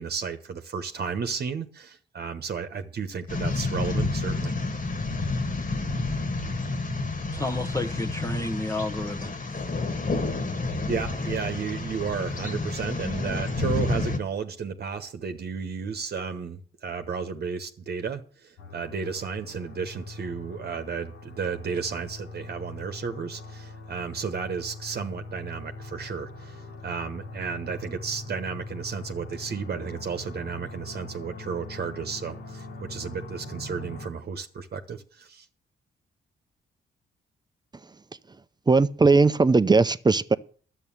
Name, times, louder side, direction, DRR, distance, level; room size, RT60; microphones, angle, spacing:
voice 1, 0.0-4.5 10.9-35.5, right 6 dB, 55° right, 1.1 m, -33 dB
sound 1, 3.3-14.2, left 3 dB, 45° left, 2.0 m, -29 dB
voice 2, 7.3-9.7, left 2 dB, 15° left, 1.0 m, -31 dB
sound 2, 18.6-34.1, left 2 dB, 85° left, 3.2 m, -42 dB
voice 3, 38.7-40.4, right 3 dB, 20° right, 0.6 m, -19 dB
11.0 x 8.1 x 7.3 m
cardioid pair, 75°, 19 cm